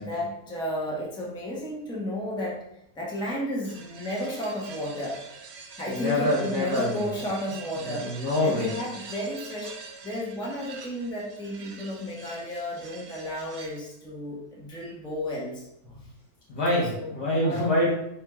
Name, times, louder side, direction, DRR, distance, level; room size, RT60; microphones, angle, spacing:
voice 1, 0.0-2.6 3.0-5.2 5.8-8.1 8.4-9.7 10.0-16.1 16.9-17.1 17.4-17.7, left 1 dB, 5° left, -4 dB, 0.5 m, -33 dB
sound 1, 3.6-13.9, right 4 dB, 70° right, 0.6 m, -44 dB
voice 2, 5.9-7.2 7.8-8.7 16.5-17.9, left 1 dB, 75° left, -7 dB, 1.5 m, -26 dB
4.5 x 3.6 x 2.3 m, 0.80 s
omnidirectional pair, 1.7 m